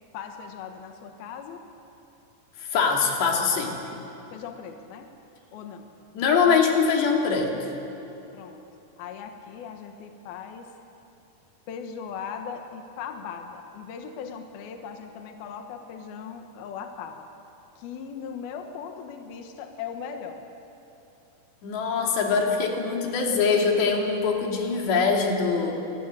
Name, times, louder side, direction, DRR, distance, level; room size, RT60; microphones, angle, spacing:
voice 1, 0.1-1.6 4.3-5.1 5.5-5.9 8.3-10.7 11.7-17.3 17.8-20.4, left 7 dB, 70° left, 5 dB, 3.0 m, -39 dB
voice 2, 2.6-3.8 6.1-7.6 21.6-25.7, left 5 dB, 90° left, 1 dB, 4.9 m, -23 dB
26.5 x 19.0 x 9.7 m, 3.0 s
omnidirectional pair, 4.8 m